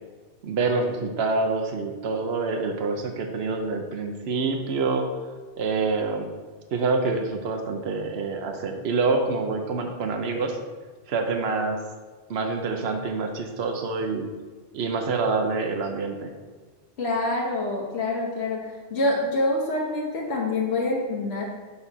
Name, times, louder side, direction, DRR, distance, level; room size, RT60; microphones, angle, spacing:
voice 1, 0.4-5.0 5.6-6.3 6.7-10.6 11.1-11.8 12.3-14.3 14.7-16.3, right 3 dB, 65° right, 4 dB, 1.0 m, -26 dB
voice 2, 17.0-21.4, left 2 dB, 65° left, -4 dB, 1.3 m, -26 dB
7.0 x 4.3 x 5.4 m, 1.4 s
omnidirectional pair, 1.2 m